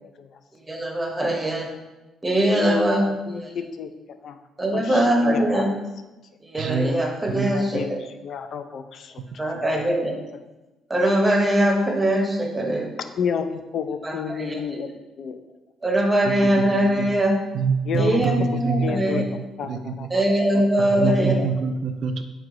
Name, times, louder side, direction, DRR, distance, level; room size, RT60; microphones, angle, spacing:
voice 1, 0.6-1.7 2.2-3.1 3.3-3.5 4.6-5.7 6.4-7.8 9.4-10.1 10.9-12.9 14.0-14.6 15.8-17.3 18.0-19.2 20.1-21.3, right 1 dB, 15° right, 1 dB, 0.8 m, -21 dB
voice 2, 3.3-3.9 4.2-4.4 4.7-5.7 7.5-9.8 13.2-14.9 15.2-15.4 17.9-18.3 18.8-20.2 20.5-20.6 21.2-21.4, left 7 dB, 55° left, 8 dB, 0.3 m, -31 dB
voice 3, 6.6-6.9 7.3-7.5 16.2-17.1 17.5-20.1 20.8-22.2, right 4 dB, 60° right, 8 dB, 0.3 m, -26 dB
4.6 x 3.2 x 3.7 m, 1.1 s
cardioid pair, 130°, 0 cm